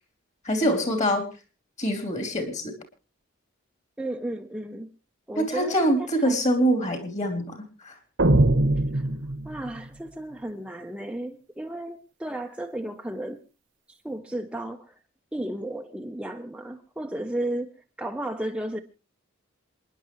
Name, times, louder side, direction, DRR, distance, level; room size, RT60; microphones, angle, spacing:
voice 1, 0.4-1.2 1.8-2.7 5.4-8.0, equal, 35° left, 3.4 m, -25 dB
voice 2, 4.0-4.9 5.3-6.0 6.2-6.4 8.9-9.1 9.4-13.4 13.9-14.9 15.3-17.7 18.0-18.8, right 1 dB, 5° right, 0.7 m, -33 dB
sound 1, 8.2-9.8, right 1 dB, 70° right, 1.2 m, -21 dB
27.5 x 10.5 x 3.1 m
head